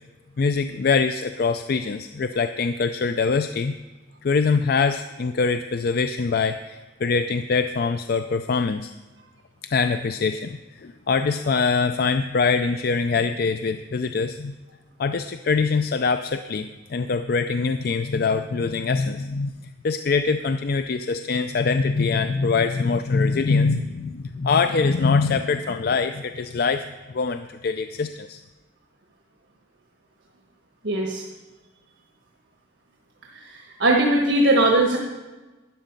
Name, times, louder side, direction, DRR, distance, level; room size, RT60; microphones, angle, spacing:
voice 1, 0.4-3.8 4.2-8.9 9.7-14.5 15.0-19.5 19.8-28.4, left 4 dB, 55° left, 10 dB, 0.4 m, -23 dB
voice 2, 30.8-31.2 33.3-35.0, right 2 dB, 80° right, 1 dB, 1.3 m, -20 dB
12.5 x 9.9 x 5.2 m, 1.2 s
head